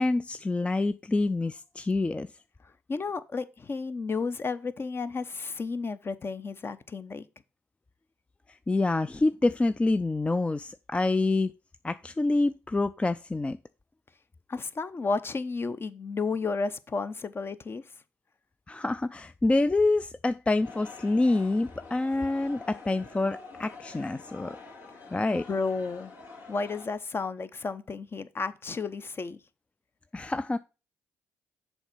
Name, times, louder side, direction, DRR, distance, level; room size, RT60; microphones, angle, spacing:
voice 1, 0.0-2.3 8.5-11.5 11.8-13.6 18.7-24.6 25.1-25.5 30.1-30.6, left 2 dB, 20° left, 0.4 m, -27 dB
voice 2, 2.9-7.2 14.5-17.8 25.5-26.1 26.5-29.4, left 4 dB, 35° left, 0.8 m, -32 dB
sound 1, 20.6-26.9, left 3 dB, 70° left, 3.0 m, -47 dB
7.0 x 4.5 x 5.7 m
hypercardioid pair, 50°, 6 cm